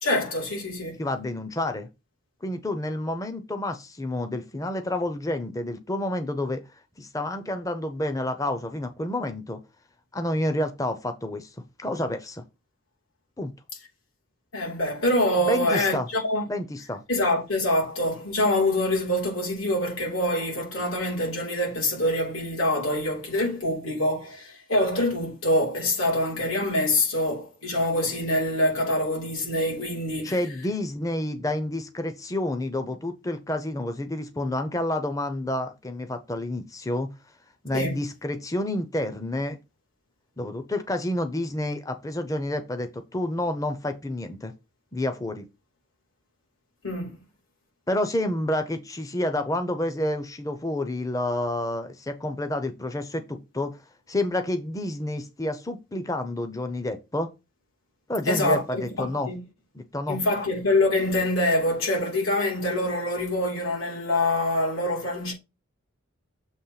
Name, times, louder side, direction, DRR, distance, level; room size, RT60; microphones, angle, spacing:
voice 1, 0.0-1.0 14.5-16.5 17.1-30.4 37.7-38.0 46.8-47.2 58.3-59.4 60.1-65.3, left 1 dB, 75° left, 3.2 m, -25 dB
voice 2, 1.0-1.9 2.4-6.6 7.0-9.6 10.1-11.5 11.8-12.4 13.4-13.5 15.5-16.1 16.5-17.0 30.2-37.1 37.6-39.6 40.4-44.5 44.9-45.5 47.9-53.7 54.1-57.3 58.1-59.3 59.7-60.2, left 1 dB, 15° left, 0.7 m, -29 dB
7.2 x 3.1 x 5.7 m
head